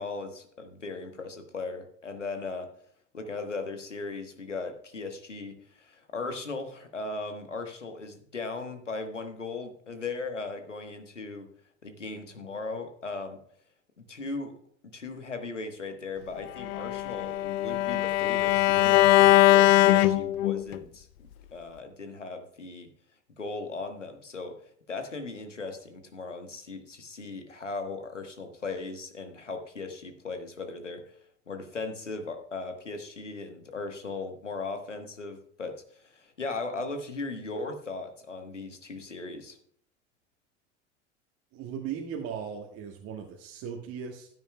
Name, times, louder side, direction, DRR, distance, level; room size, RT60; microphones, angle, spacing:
voice 1, 0.0-2.7 3.1-11.5 11.8-13.4 14.1-14.5 14.9-22.9 23.4-24.6 24.9-31.2 31.5-39.6, left 3 dB, 90° left, 7 dB, 1.3 m, -38 dB
Bowed string instrument, 16.6-20.8, left 15 dB, 55° left, 0.6 m, -21 dB
voice 2, 41.5-44.3, right 7 dB, 45° right, 0 dB, 1.5 m, -37 dB
15.0 x 9.5 x 2.2 m, 0.63 s
figure-of-eight pair, 75°, 35 cm